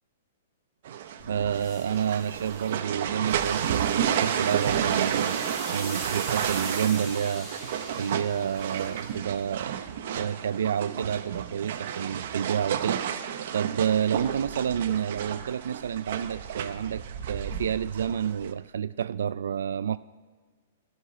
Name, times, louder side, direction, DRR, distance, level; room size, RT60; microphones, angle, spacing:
sound 1, 0.8-18.5, right 9 dB, 45° right, 0.7 m, -31 dB
sound 2, 1.2-9.8, equal, 10° left, 1.4 m, -43 dB
voice 1, 1.2-5.4 5.7-9.8 10.1-20.0, right 8 dB, 75° right, 15 dB, 0.3 m, -29 dB
13.0 x 5.7 x 9.3 m, 1.4 s
hypercardioid pair, 170°, 0 cm